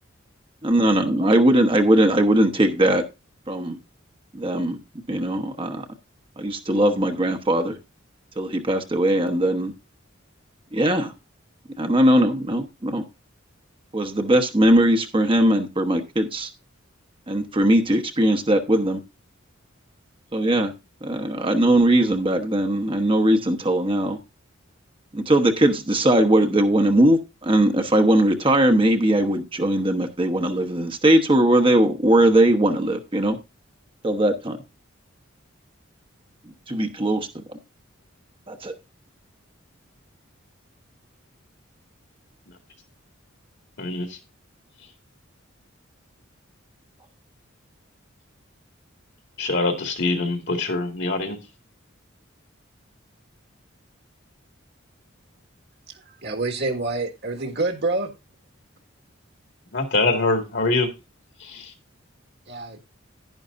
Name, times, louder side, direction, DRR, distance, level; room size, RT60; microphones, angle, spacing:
voice 1, 0.6-3.0 3.5-3.8 4.3-4.8 5.1-5.8 6.4-7.8 8.4-9.7 10.7-11.1 11.8-13.0 13.9-16.5 17.3-19.0 20.3-20.7 21.0-24.2 25.1-33.4 34.0-34.6 36.7-37.4 38.5-38.7, right 1 dB, 25° right, 1.0 m, -20 dB
voice 2, 43.8-44.2 49.4-51.4 59.7-60.9 61.4-61.7, left 3 dB, 60° left, 2.1 m, -24 dB
voice 3, 56.2-58.1 62.5-62.8, right 2 dB, 55° right, 1.8 m, -26 dB
11.0 x 10.5 x 2.6 m
head